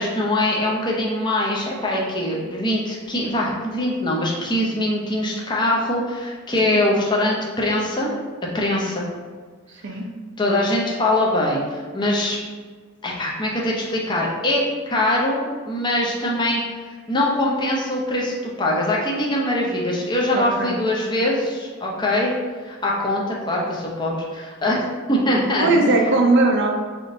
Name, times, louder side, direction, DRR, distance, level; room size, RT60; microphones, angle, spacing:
voice 1, 0.0-8.1 8.5-9.1 10.4-12.4 13.0-14.6 14.9-16.6 17.1-22.3 22.6-25.7, left 1 dB, 20° left, -3 dB, 0.6 m, -22 dB
voice 2, 6.7-7.0 9.8-10.1 20.3-20.8 25.6-26.7, right 2 dB, 55° right, 1 dB, 0.5 m, -19 dB
3.5 x 2.6 x 3.8 m, 1.5 s
head